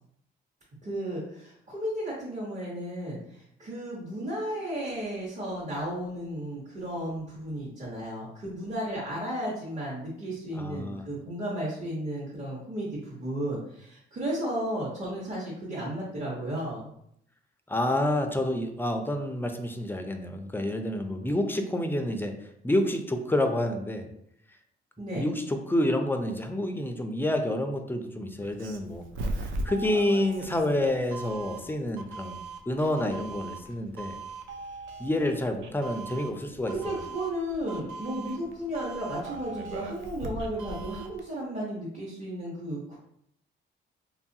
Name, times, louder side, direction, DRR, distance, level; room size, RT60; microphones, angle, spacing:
voice 1, 0.8-16.8 25.0-25.3 36.7-43.0, right 1 dB, 35° right, -7 dB, 1.0 m, -34 dB
voice 2, 10.5-11.0 17.7-22.3 22.6-24.1 25.1-29.0 29.4-32.4 32.7-34.2 35.0-36.9, left 1 dB, 10° left, 5 dB, 0.3 m, -28 dB
Doorbell, 28.4-41.2, right 2 dB, 75° right, 0.4 m, -39 dB
2.9 x 2.3 x 2.7 m, 0.72 s
cardioid pair, 90°, 20 cm